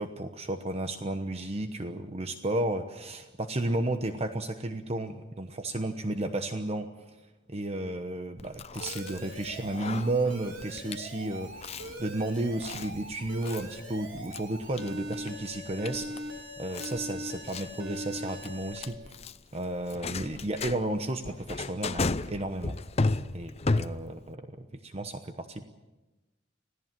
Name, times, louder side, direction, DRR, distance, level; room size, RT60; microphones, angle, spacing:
voice 1, 0.0-6.9 7.5-19.1 19.5-22.8 23.3-25.6, right 1 dB, 35° right, 7 dB, 1.0 m, -33 dB
Chewing mastication, 8.4-24.3, left 3 dB, 35° left, 0.6 m, -35 dB
Alarm, 8.8-18.8, equal, 80° right, 3.7 m, -41 dB
26.0 x 17.0 x 7.6 m, 1.1 s
head